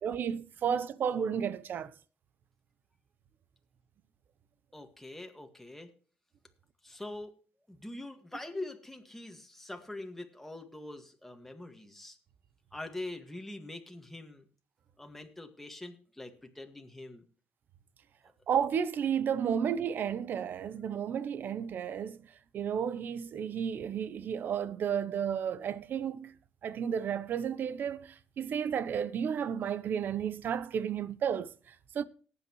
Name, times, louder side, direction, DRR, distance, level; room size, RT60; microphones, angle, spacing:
voice 1, 0.0-1.9 18.5-22.2 22.5-26.3 26.6-32.0, right 8 dB, 55° right, 0.9 m, -32 dB
voice 2, 4.7-5.9 6.8-7.4 7.7-12.2 12.7-14.5 15.0-17.2 18.2-18.3, left 2 dB, 5° left, 1.9 m, -44 dB
18.5 x 8.7 x 3.1 m
cardioid pair, 110°, 4 cm